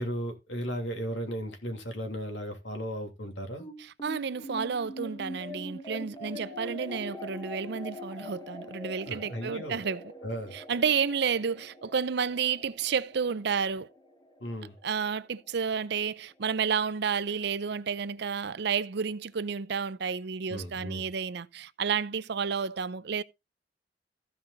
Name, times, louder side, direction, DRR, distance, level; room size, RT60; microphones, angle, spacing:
voice 1, 0.0-3.7 9.1-9.8 10.2-10.5 14.4-14.7 20.5-21.0, equal, 85° left, 2.9 m, -35 dB
sound 1, 3.6-16.2, equal, 25° left, 1.6 m, -43 dB
voice 2, 4.0-10.0 10.5-13.9 14.8-23.2, right 6 dB, 65° right, 0.6 m, -31 dB
15.0 x 5.4 x 4.0 m
head